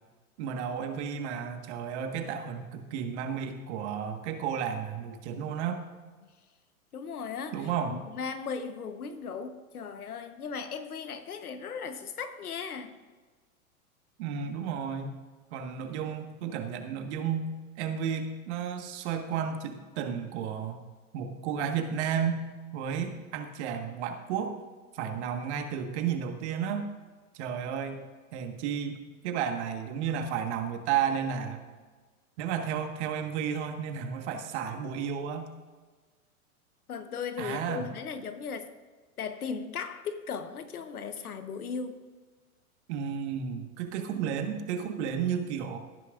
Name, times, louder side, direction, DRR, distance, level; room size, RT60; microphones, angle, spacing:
voice 1, 0.4-5.8 7.5-8.0 14.2-15.1 15.5-17.5 17.8-20.8 21.1-22.5 22.7-24.6 24.9-26.9 27.3-28.0 28.3-31.6 32.4-35.5 37.4-37.9 42.9-45.8, right 7 dB, 50° right, 5 dB, 1.6 m, -32 dB
voice 2, 6.9-12.9 36.9-38.7 39.2-42.0, left 6 dB, 80° left, 9 dB, 1.2 m, -37 dB
17.0 x 9.9 x 2.5 m, 1.4 s
hypercardioid pair, 110°, 44 cm